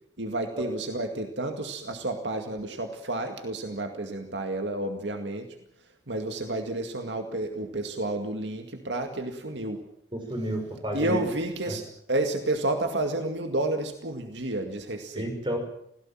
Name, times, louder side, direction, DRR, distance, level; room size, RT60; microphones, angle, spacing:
voice 1, 0.2-5.5 6.1-9.8 10.9-15.3, right 2 dB, 75° right, 5 dB, 2.2 m, -30 dB
voice 2, 10.3-11.2 11.7-11.8 15.1-15.6, right 1 dB, 25° right, 4 dB, 5.7 m, -31 dB
26.0 x 17.5 x 7.5 m, 0.73 s
head